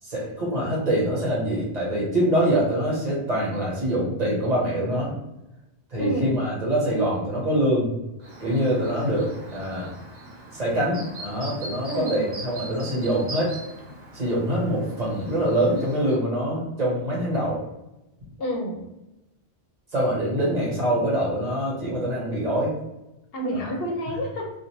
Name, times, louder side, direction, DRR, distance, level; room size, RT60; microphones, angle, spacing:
voice 1, 0.0-5.1 5.9-7.9 8.4-9.9 10.5-13.6 14.1-17.6 19.9-22.8 23.5-23.7, right 1 dB, 45° right, -5 dB, 1.0 m, -24 dB
voice 2, 6.0-6.3 11.9-12.2 18.4-18.8 23.3-24.5, equal, 70° left, 1 dB, 0.8 m, -29 dB
Chirp tweet, 8.2-16.2, right 2 dB, 60° right, 0.9 m, -41 dB
2.4 x 2.3 x 3.0 m, 0.93 s
omnidirectional pair, 1.1 m